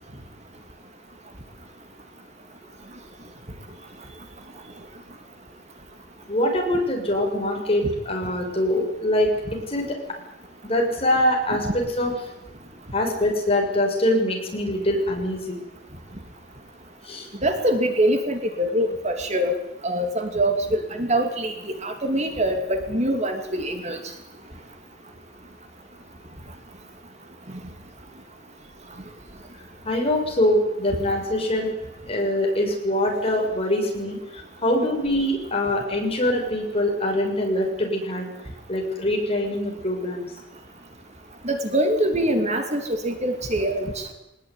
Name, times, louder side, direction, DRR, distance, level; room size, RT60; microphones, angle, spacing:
voice 1, 6.3-10.2 10.6-12.1 12.9-15.6 17.0-17.3 29.8-31.7 32.1-38.3 38.7-40.3, left 1 dB, 30° left, 1 dB, 7.1 m, -24 dB
voice 2, 17.4-19.6 19.8-21.5 21.8-24.0 41.4-44.1, right 1 dB, 35° right, 5 dB, 2.7 m, -24 dB
23.0 x 20.0 x 9.8 m, 0.89 s
head